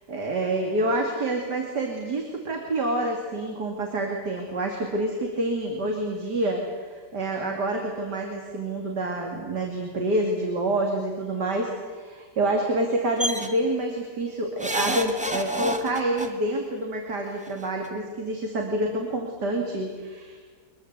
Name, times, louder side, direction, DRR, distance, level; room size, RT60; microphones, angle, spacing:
voice 1, 0.1-20.4, right 1 dB, 60° right, 1 dB, 3.1 m, -27 dB
sound 1, 13.2-13.5 14.6-16.3 17.5-17.6 17.8-17.9, equal, 5° right, 1.5 m, -28 dB
24.0 x 21.5 x 8.2 m, 1.5 s
omnidirectional pair, 2.0 m